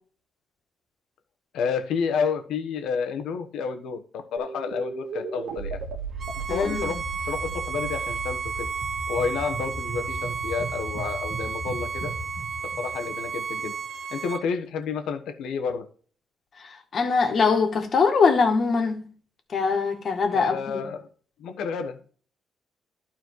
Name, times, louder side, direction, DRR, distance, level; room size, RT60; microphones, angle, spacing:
voice 1, 1.5-5.8 6.3-8.7 9.1-12.1 12.6-13.7 14.1-15.9 20.3-21.1 21.4-22.0, left 6 dB, 80° left, 1.2 m, -30 dB
sound 1, 4.4-13.7, right 3 dB, 85° right, 1.7 m, -36 dB
Bowed string instrument, 6.2-14.4, right 6 dB, 50° right, 0.7 m, -33 dB
voice 2, 6.5-6.9 16.6-19.0 19.5-20.8, left 5 dB, 50° left, 1.9 m, -23 dB
12.0 x 4.4 x 4.7 m
cardioid pair, 90°, 0 cm